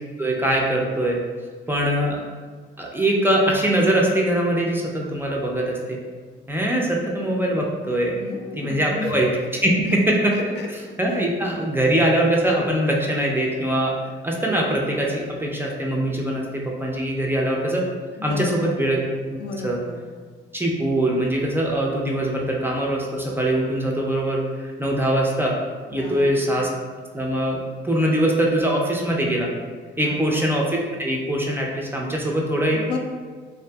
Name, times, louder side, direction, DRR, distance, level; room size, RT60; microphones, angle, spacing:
voice 1, 0.2-1.2 1.7-2.2 2.8-6.0 6.5-8.1 8.6-9.3 9.5-9.7 10.2-10.3 11.0-13.9 14.2-16.4 16.8-17.9 18.2-19.0 19.6-19.8 20.5-25.5 25.9-26.7 27.1-29.5 30.0-30.7 31.0-32.8, right 1 dB, 10° right, -2 dB, 0.4 m, -22 dB
voice 2, 8.1-9.1 9.8-10.0 10.3-10.7 11.1-11.3 18.2-18.8 19.4-20.0 26.0-26.6 30.0-30.4 32.7-33.0, left 4 dB, 60° left, 2 dB, 0.4 m, -33 dB
2.6 x 2.5 x 2.2 m, 1.5 s
cardioid pair, 90°, 20 cm